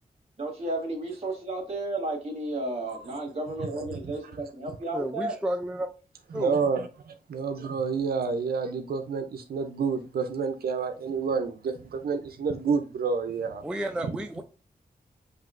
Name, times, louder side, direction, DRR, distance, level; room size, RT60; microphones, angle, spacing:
voice 1, 0.4-5.3, right 2 dB, 45° right, 1.5 m, -33 dB
voice 2, 4.9-5.9 6.3-6.5 13.6-14.4, right 1 dB, 5° right, 0.3 m, -31 dB
voice 3, 6.3-13.6, right 5 dB, 85° right, 0.4 m, -29 dB
5.7 x 2.7 x 2.4 m
wide cardioid pair, 110°, 15 cm